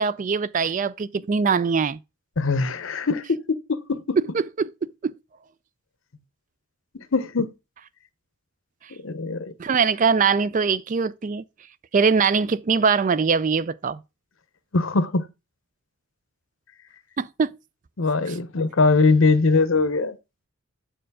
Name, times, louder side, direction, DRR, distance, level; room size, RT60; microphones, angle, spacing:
voice 1, 0.0-2.0 4.3-4.7 5.0-5.1 9.6-11.4 11.9-14.0 17.2-17.5 18.3-18.4, right 5 dB, 35° right, 0.3 m, -22 dB
voice 2, 2.4-4.2 7.1-7.5 9.0-9.5 14.7-15.3 18.0-20.2, left 3 dB, 60° left, 0.7 m, -21 dB
7.6 x 4.6 x 4.7 m
head